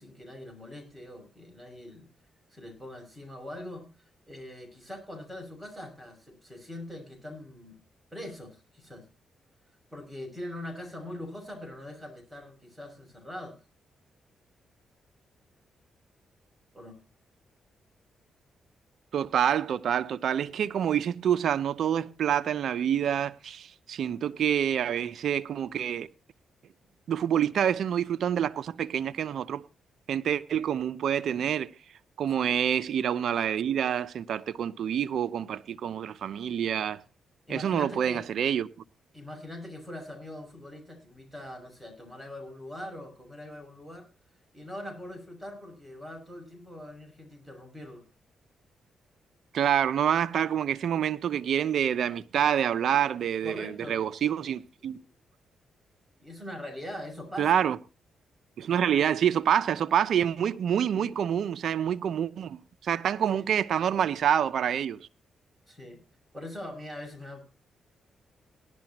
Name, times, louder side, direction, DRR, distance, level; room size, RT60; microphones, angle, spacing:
voice 1, 0.0-2.1 2.5-3.9 4.3-7.8 8.1-9.0 9.9-13.6 16.7-17.0 32.4-32.6 37.5-38.2 39.1-44.1 44.5-48.1 53.4-54.4 56.2-57.6 60.9-61.1 63.3-63.5 65.7-66.0 66.3-67.6, left 1 dB, 5° right, 6.3 m, -42 dB
voice 2, 19.1-26.1 27.1-29.6 30.1-31.7 32.2-37.0 37.5-38.7 49.5-55.0 57.4-57.8 58.6-65.1, right 9 dB, 70° right, 0.7 m, -27 dB
18.0 x 11.5 x 2.9 m
cardioid pair, 75°, 0 cm